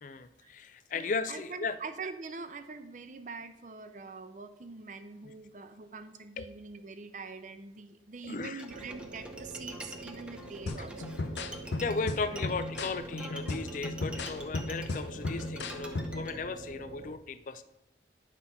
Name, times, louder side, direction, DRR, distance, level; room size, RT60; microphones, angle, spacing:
voice 1, 0.0-1.8 5.2-5.3 6.4-6.5 8.2-8.6 11.8-17.6, left 4 dB, 45° left, 12 dB, 0.4 m, -36 dB
voice 2, 0.9-11.1 12.2-12.5 12.9-13.0 13.3-13.4, right 4 dB, 45° right, 10 dB, 0.6 m, -44 dB
Bowed string instrument, 8.6-16.3, right 1 dB, 5° right, 0.7 m, -47 dB
sound 1, 8.7-17.1, right 2 dB, 80° right, 1.0 m, -46 dB
sound 2, 10.7-16.3, left 2 dB, 85° left, 0.6 m, -36 dB
10.5 x 4.2 x 5.7 m, 0.90 s
head